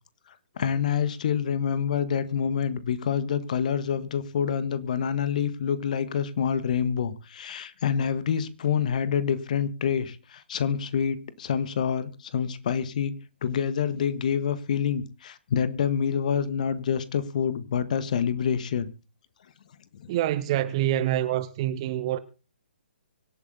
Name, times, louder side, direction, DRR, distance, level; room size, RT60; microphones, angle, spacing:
voice 1, 0.6-13.1 13.4-18.9 19.9-20.1, left 7 dB, 45° left, 1.5 m, -27 dB
voice 2, 20.1-22.2, right 12 dB, 30° right, 1.2 m, -26 dB
24.5 x 8.6 x 4.0 m
figure-of-eight pair, 130°, 6 cm